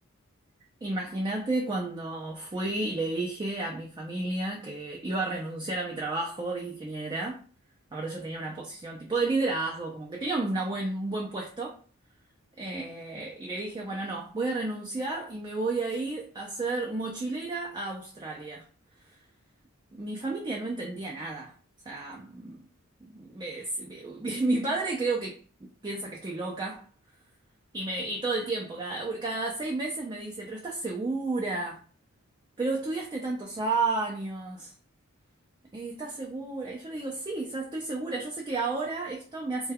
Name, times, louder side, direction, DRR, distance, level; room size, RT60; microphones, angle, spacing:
voice 1, 0.8-7.4 7.9-11.8 12.6-18.6 19.1-19.2 19.9-21.5 21.9-22.7 23.0-25.4 25.8-26.8 27.7-31.8 32.6-34.7 35.7-39.7, right 2 dB, 20° right, 0.4 m, -32 dB
2.2 x 2.2 x 3.4 m
head